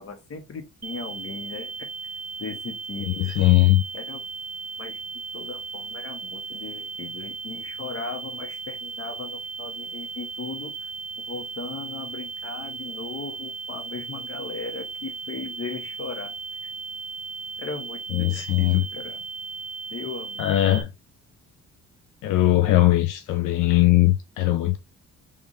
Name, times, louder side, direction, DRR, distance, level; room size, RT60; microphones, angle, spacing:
voice 1, 0.0-1.9 2.4-3.1 3.9-4.3 4.8-5.0 5.3-10.9 11.3-16.4 17.6-19.2 19.9-20.8 22.7-22.8, left 4 dB, 50° left, 1.4 m, -37 dB
sound 1, 0.8-20.8, right 4 dB, 55° right, 0.7 m, -36 dB
voice 2, 3.1-3.8 18.1-18.8 20.4-20.9 22.2-24.8, left 15 dB, 90° left, 0.6 m, -20 dB
3.6 x 3.5 x 4.0 m
cardioid pair, 90°, 30 cm